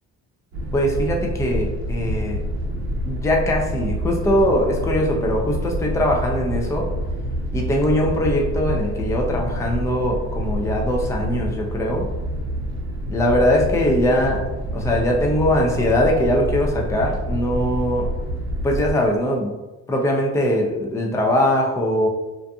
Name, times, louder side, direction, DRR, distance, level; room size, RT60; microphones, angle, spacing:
sound 1, 0.5-18.9, equal, 65° right, 0.8 m, -27 dB
voice 1, 0.7-2.4 3.0-6.9 7.5-12.1 13.1-14.4 14.7-18.1 18.6-19.6 19.9-22.1, left 1 dB, 10° left, 0 dB, 0.4 m, -21 dB
2.6 x 2.5 x 2.3 m, 1.1 s
cardioid pair, 90°, 30 cm